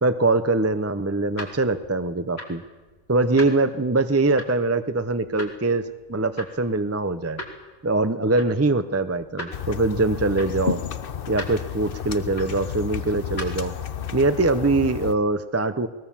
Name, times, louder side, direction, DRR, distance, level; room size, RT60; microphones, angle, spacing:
voice 1, 0.0-2.6 3.1-7.4 7.8-10.8 11.3-13.7 14.1-15.9, right 3 dB, 15° right, 11 dB, 0.6 m, -23 dB
sound 1, 0.8-13.8, left 1 dB, 85° left, 3.4 m, -42 dB
sound 2, 9.5-15.1, left 8 dB, 65° left, 1.0 m, -32 dB
21.0 x 19.5 x 7.2 m, 1.2 s
omnidirectional pair, 1.0 m